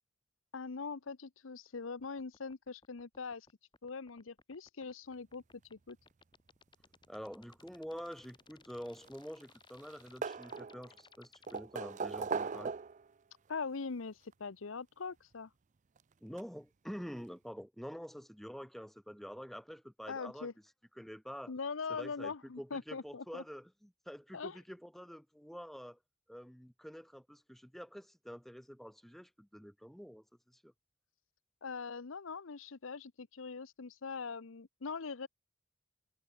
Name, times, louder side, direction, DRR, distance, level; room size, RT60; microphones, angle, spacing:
voice 1, 0.5-3.5 3.8-5.4 5.7-6.0 13.5-15.5 20.1-20.5 21.5-23.4 24.3-24.6 31.6-35.3, left 4 dB, 75° left, 0.8 m, -42 dB
sound 1, 2.0-11.6, left 4 dB, 25° left, 2.4 m, -62 dB
voice 2, 7.1-12.7 16.2-20.5 21.0-21.5 21.9-26.0 26.3-30.7, equal, ahead, 1.8 m, -47 dB
sound 2, 8.9-9.6 9.8-11.0 11.5-13.1 14.3-14.4 16.0-16.1 16.4-16.5, right 5 dB, 40° right, 0.5 m, -39 dB
head